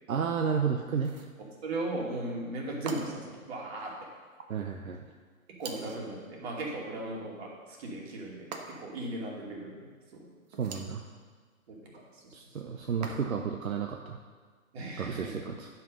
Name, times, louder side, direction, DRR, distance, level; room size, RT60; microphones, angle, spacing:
voice 1, 0.1-1.1 4.5-5.0 10.6-11.0 12.3-14.2 15.0-15.7, right 6 dB, 75° right, 3 dB, 0.9 m, -32 dB
sound 1, 1.0-1.4 2.9-3.4 5.6-6.1 8.5-9.0 10.5-11.0 13.0-13.6, right 4 dB, 30° right, 0.9 m, -43 dB
voice 2, 1.4-3.9 5.5-8.5 8.8-10.3 11.7-12.3 14.7-15.5, right 2 dB, 50° right, -2 dB, 2.8 m, -37 dB
10.5 x 5.9 x 5.3 m, 1.5 s
hypercardioid pair, 140°, 41 cm